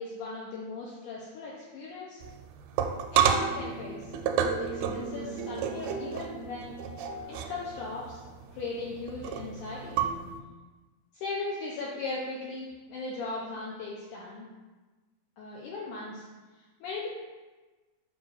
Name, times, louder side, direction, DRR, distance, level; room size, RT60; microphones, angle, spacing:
voice 1, 0.0-2.2 3.1-4.1 4.6-6.8 7.3-8.2 8.5-10.0 11.1-14.5 15.4-16.3 16.5-17.1, left 3 dB, 90° left, -4 dB, 1.8 m, -38 dB
sound 1, 2.2-10.4, right 7 dB, 85° right, 2.4 m, -31 dB
7.1 x 2.5 x 5.4 m, 1.2 s
omnidirectional pair, 4.4 m